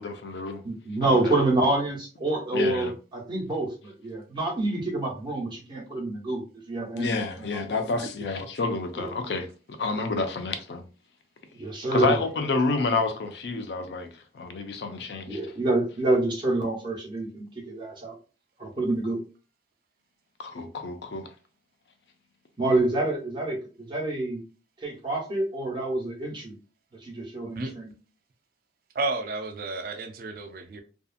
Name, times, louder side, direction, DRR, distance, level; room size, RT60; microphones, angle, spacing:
voice 1, 0.0-0.6 1.0-1.2 2.5-2.9 7.0-10.8 11.9-15.4 20.4-21.3, left 3 dB, 70° left, 0.5 m, -29 dB
voice 2, 0.6-7.6 9.0-9.1 11.5-12.1 15.3-18.1 18.6-19.2 22.6-24.4 24.8-26.6 27.0-27.9, right 2 dB, 25° right, 1.0 m, -27 dB
voice 3, 28.9-30.8, right 3 dB, 55° right, 0.4 m, -32 dB
2.7 x 2.4 x 2.4 m
head